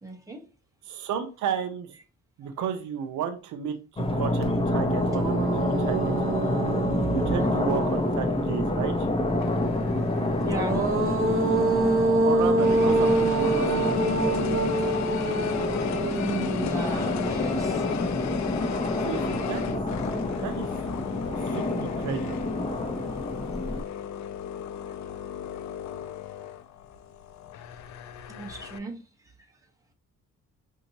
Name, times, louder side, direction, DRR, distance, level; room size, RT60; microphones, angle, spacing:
voice 1, 0.0-0.4 7.0-7.7 10.3-10.9 16.0-17.8 28.3-29.0, right 3 dB, 10° right, 1.2 m, -35 dB
voice 2, 0.9-1.9 2.4-6.2 7.1-9.1 12.2-14.1 19.0-20.0 20.2-20.7 21.5-22.4, right 7 dB, 75° right, 0.6 m, -33 dB
sound 1, 4.0-23.8, left 1 dB, 20° left, 0.7 m, -28 dB
sound 2, 4.4-4.5 4.9-8.6 10.2-17.5, right 2 dB, 45° right, 1.0 m, -27 dB
sound 3, 9.4-12.2 12.6-28.8, left 9 dB, 65° left, 0.5 m, -36 dB
5.2 x 2.7 x 2.8 m
cardioid pair, 90°, 30 cm